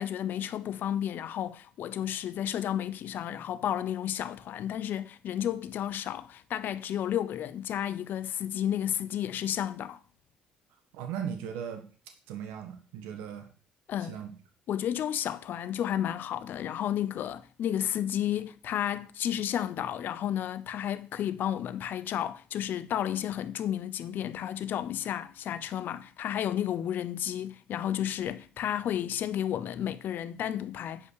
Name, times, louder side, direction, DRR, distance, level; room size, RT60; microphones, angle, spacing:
voice 1, 0.0-10.0 13.9-14.2 14.7-31.1, left 10 dB, 65° left, 0.7 m, -32 dB
voice 2, 10.9-11.8 12.3-13.5 14.0-14.3, right 8 dB, 85° right, 1.4 m, -37 dB
8.4 x 5.4 x 6.5 m
supercardioid pair, 70°, 4 cm